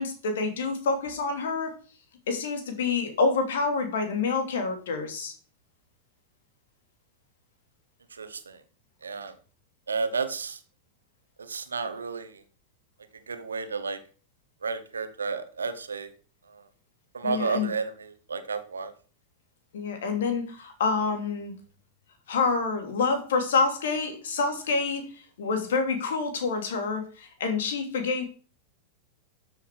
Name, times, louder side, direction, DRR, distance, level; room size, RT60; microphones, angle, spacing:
voice 1, 0.0-1.7 2.3-5.3 17.2-17.7 19.7-21.5 22.3-28.2, left 4 dB, 60° left, 6 dB, 2.9 m, -27 dB
voice 2, 8.1-8.6 9.0-9.3 9.9-10.6 11.4-12.4 13.3-14.0 14.6-16.1 16.5-16.7 17.1-18.9, right 4 dB, 75° right, 10 dB, 1.4 m, -32 dB
12.5 x 6.9 x 4.8 m, 0.39 s
figure-of-eight pair, 90°, 0 cm